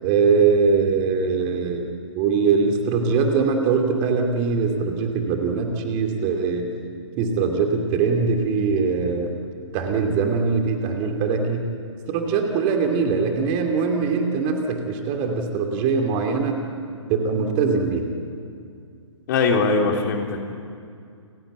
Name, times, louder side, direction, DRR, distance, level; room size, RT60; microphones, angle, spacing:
voice 1, 0.0-1.9 2.1-6.7 7.2-9.3 9.7-11.6 12.1-16.6 17.1-18.1, right 5 dB, 30° right, 3 dB, 2.6 m, -22 dB
voice 2, 19.3-20.4, left 4 dB, 40° left, 2 dB, 3.1 m, -21 dB
29.5 x 16.0 x 9.1 m, 2.4 s
figure-of-eight pair, 125°, 16 cm